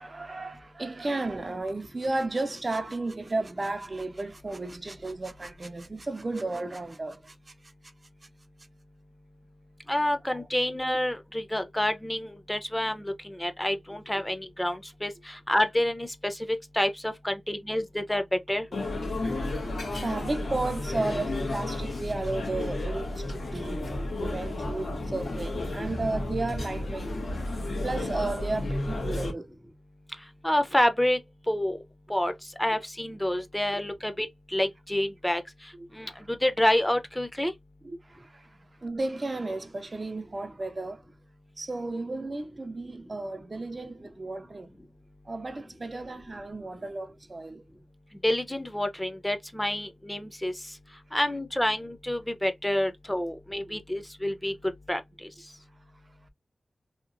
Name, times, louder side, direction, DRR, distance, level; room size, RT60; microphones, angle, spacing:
voice 1, 0.0-7.3 10.3-10.4 19.2-27.1 27.8-29.5 35.8-35.9 37.8-38.5 38.8-41.0 41.6-44.7 45.3-47.6 53.7-53.8, right 2 dB, 45° right, 0.4 m, -34 dB
voice 2, 9.9-16.4 16.7-18.2 18.5-18.7 30.4-31.2 31.5-31.8 32.1-32.3 32.6-34.3 34.5-35.4 36.0-37.5 48.2-50.5 51.1-54.5 54.9-55.0, left 1 dB, 10° left, 0.6 m, -28 dB
sound 1, 18.7-29.3, left 2 dB, 80° left, 1.1 m, -32 dB
2.8 x 2.8 x 2.5 m
wide cardioid pair, 60°, 0 cm